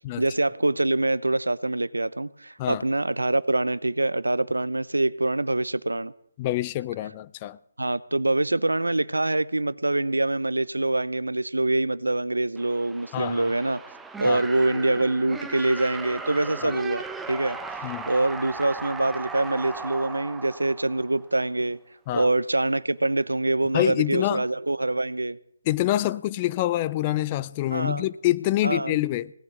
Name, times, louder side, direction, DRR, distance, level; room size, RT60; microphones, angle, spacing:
voice 1, 0.2-6.1 7.8-13.8 14.2-17.6 18.1-21.8 22.1-25.4 27.7-28.1 28.6-29.0, right 2 dB, 90° right, 0.7 m, -25 dB
voice 2, 6.4-7.6 13.1-13.5 14.3-14.4 16.6-16.7 17.8-18.1 22.1-22.3 23.7-24.4 25.7-29.3, left 15 dB, 30° left, 0.5 m, -26 dB
sound 1, 12.6-21.4, right 4 dB, 5° right, 0.8 m, -37 dB
18.0 x 7.0 x 9.3 m
figure-of-eight pair, 145°, 0 cm